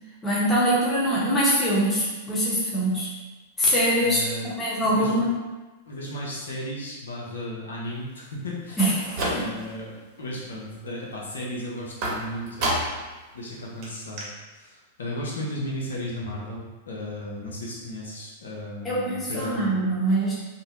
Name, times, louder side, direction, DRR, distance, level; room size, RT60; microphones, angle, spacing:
voice 1, 0.2-3.1 3.6-4.2 4.6-5.4 8.8-9.5 18.8-20.4, equal, 15° left, -8 dB, 0.9 m, -23 dB
voice 2, 4.0-4.5 4.8-5.2 5.9-8.8 9.3-9.9 10.2-12.8 13.3-19.7, left 1 dB, 85° left, -4 dB, 0.7 m, -35 dB
sound 1, 8.7-9.8 10.2-10.7 12.0-13.1 13.5-13.6 13.8-13.9 14.2-14.3, right 1 dB, 55° right, 0.8 m, -30 dB
2.5 x 2.0 x 2.9 m, 1.2 s
hypercardioid pair, 115°, 0 cm